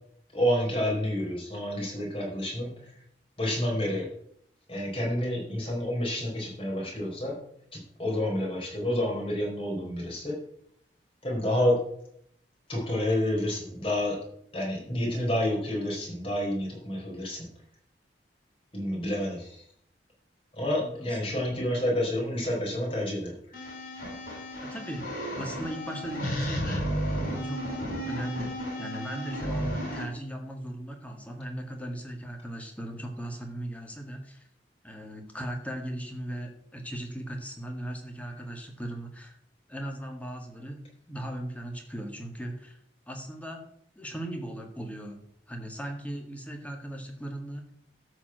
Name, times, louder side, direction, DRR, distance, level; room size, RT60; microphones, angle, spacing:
voice 1, 0.3-2.9 3.4-4.1 4.7-7.4 7.7-10.4 11.2-11.8 12.7-14.2 14.5-17.5 18.7-19.6 20.5-23.4, left 1 dB, 30° left, -2 dB, 4.3 m, -29 dB
voice 2, 20.8-21.4 24.6-27.8 28.0-34.5 34.8-39.4 39.7-42.8 43.1-45.2 45.5-47.7, right 1 dB, 10° left, 3 dB, 1.8 m, -38 dB
sound 1, 23.5-30.0, equal, 50° left, 4.4 m, -33 dB
12.5 x 4.7 x 7.9 m, 0.70 s
head